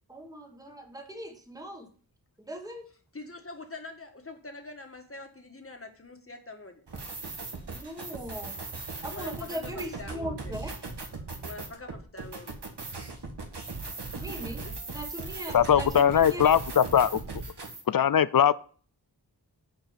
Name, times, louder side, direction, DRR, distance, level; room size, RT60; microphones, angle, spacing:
voice 1, 0.1-1.9 2.4-2.8 7.7-8.5 9.0-10.7 14.1-14.6 14.9-16.5, equal, 10° right, 4 dB, 1.4 m, -39 dB
voice 2, 3.1-6.8 9.1-10.5 11.4-12.5 14.6-14.8, left 3 dB, 35° left, 4 dB, 1.6 m, -44 dB
sound 1, 6.9-17.8, right 3 dB, 80° right, 1.6 m, -38 dB
voice 3, 15.5-17.2 17.9-18.5, left 9 dB, 60° left, 17 dB, 0.5 m, -21 dB
7.9 x 4.7 x 6.9 m, 0.44 s
wide cardioid pair, 65°, 40 cm